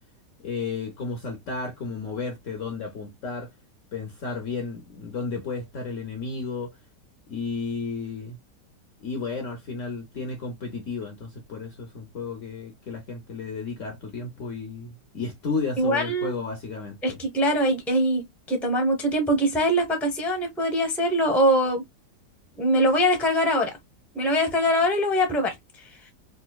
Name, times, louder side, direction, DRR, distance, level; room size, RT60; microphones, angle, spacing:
voice 1, 0.4-3.5 3.9-6.8 7.3-8.4 9.0-17.2, left 4 dB, 60° left, 0.9 m, -33 dB
voice 2, 15.8-16.3 17.0-21.8 22.6-23.8 24.1-25.5, equal, ahead, 0.6 m, -23 dB
4.0 x 2.6 x 2.2 m
omnidirectional pair, 1.9 m